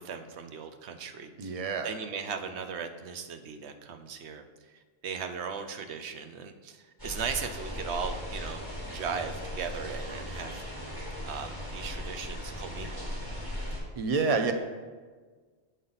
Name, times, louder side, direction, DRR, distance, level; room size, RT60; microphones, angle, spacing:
voice 1, 0.0-10.9 11.2-13.5, right 6 dB, 80° right, 7 dB, 0.9 m, -38 dB
voice 2, 1.4-1.9 14.0-14.5, right 4 dB, 40° right, 6 dB, 0.6 m, -27 dB
sound 1, 7.0-13.8, left 1 dB, 20° right, 2.3 m, -38 dB
8.1 x 5.6 x 3.9 m, 1.5 s
omnidirectional pair, 1.1 m